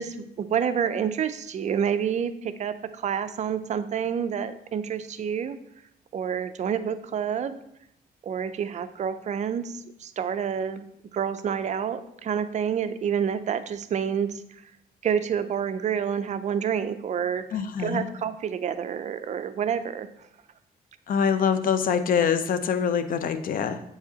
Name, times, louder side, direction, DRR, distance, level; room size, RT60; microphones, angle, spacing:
voice 1, 0.0-5.6 6.1-7.6 8.2-10.8 11.1-14.4 15.0-17.4 17.8-20.1, right 8 dB, 45° right, 11 dB, 0.4 m, -28 dB
voice 2, 17.5-18.1 21.1-23.8, left 7 dB, 60° left, 11 dB, 0.5 m, -24 dB
7.8 x 4.7 x 2.8 m, 0.77 s
cardioid pair, 120°, 16 cm